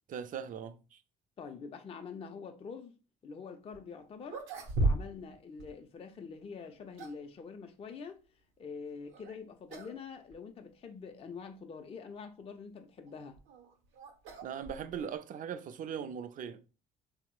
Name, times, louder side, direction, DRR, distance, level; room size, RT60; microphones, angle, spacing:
voice 1, 0.1-1.0 14.4-16.6, right 8 dB, 45° right, 0.4 m, -40 dB
voice 2, 1.4-3.0 3.2-4.4 4.8-8.2 8.6-13.4, left 5 dB, 30° left, 0.4 m, -45 dB
sound 1, 3.7-3.8 4.2-5.3 5.6-5.7 6.6-7.3 9.1-9.4 9.7-10.0 10.3-10.4 11.2-11.3 13.1-15.2, right 2 dB, 80° right, 0.7 m, -35 dB
3.0 x 2.0 x 2.9 m
supercardioid pair, 70°, 19 cm